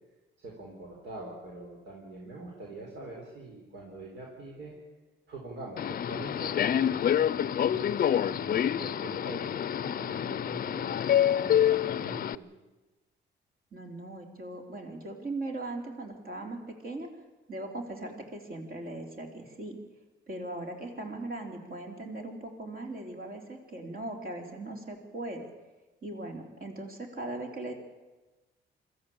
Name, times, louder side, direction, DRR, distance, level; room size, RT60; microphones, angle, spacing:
voice 1, 0.4-4.8 5.3-12.5, right 2 dB, 70° right, -1 dB, 4.3 m, -44 dB
Subway metro underground, 5.8-12.4, left 10 dB, 45° left, 0.6 m, -27 dB
voice 2, 13.7-17.1 17.5-19.8 20.3-25.5 26.0-27.7, right 2 dB, 50° right, 2 dB, 4.2 m, -39 dB
22.0 x 14.5 x 8.8 m, 1.1 s
cardioid pair, 90°, 20 cm